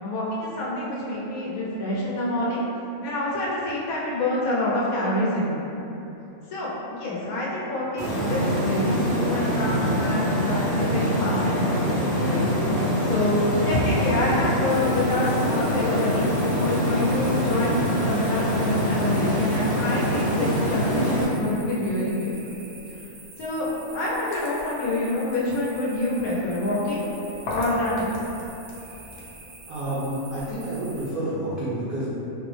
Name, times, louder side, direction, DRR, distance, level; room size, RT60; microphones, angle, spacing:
voice 1, 0.0-2.6 3.0-5.6 6.5-12.5 13.1-13.4 13.6-16.3 16.6-22.6 23.4-27.0 27.5-28.1, left 2 dB, 85° left, -6 dB, 1.2 m, -27 dB
sound 1, 8.0-21.3, equal, 20° left, 0.4 m, -24 dB
sound 2, 13.1-15.8 16.1-29.4, left 1 dB, 65° left, 1.0 m, -40 dB
sound 3, 14.7-31.1, right 3 dB, 90° right, 1.1 m, -46 dB
voice 2, 29.7-32.1, right 1 dB, 55° right, -11 dB, 0.7 m, -29 dB
3.8 x 2.0 x 3.1 m, 3.0 s
omnidirectional pair, 1.5 m